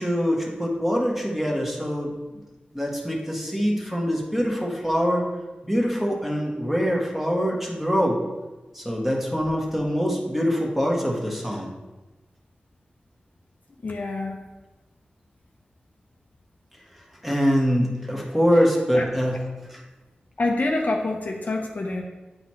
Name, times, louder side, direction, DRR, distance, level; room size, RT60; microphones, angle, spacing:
voice 1, 0.0-2.1 2.7-5.2 5.6-8.2 8.7-11.7 17.2-19.4 19.7-19.8, equal, 5° right, -2 dB, 1.4 m, -24 dB
voice 2, 13.8-14.4 18.9-19.1 20.4-22.0, left 2 dB, 55° left, 2 dB, 0.7 m, -26 dB
8.5 x 4.0 x 3.1 m, 1.1 s
wide cardioid pair, 65°, 3 cm